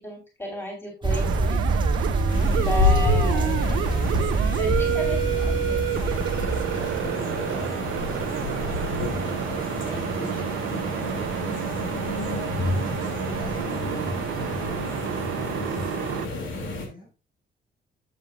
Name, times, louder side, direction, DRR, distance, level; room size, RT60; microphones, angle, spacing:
voice 1, 0.0-1.7 2.7-3.5 4.6-5.2, left 1 dB, 10° left, 3.7 m, -32 dB
sound 1, 1.0-7.1, right 3 dB, 25° right, 1.7 m, -25 dB
sound 2, 1.1-16.3, right 11 dB, 85° right, 0.8 m, -30 dB
sound 3, 2.3-16.9, left 3 dB, 75° left, 2.7 m, -29 dB
voice 2, 2.6-3.1 3.4-3.8 4.1-6.1 6.5-8.8 9.4-14.3 15.6-17.1, left 1 dB, 45° left, 5.1 m, -43 dB
11.0 x 7.5 x 2.4 m
cardioid pair, 90°, 20 cm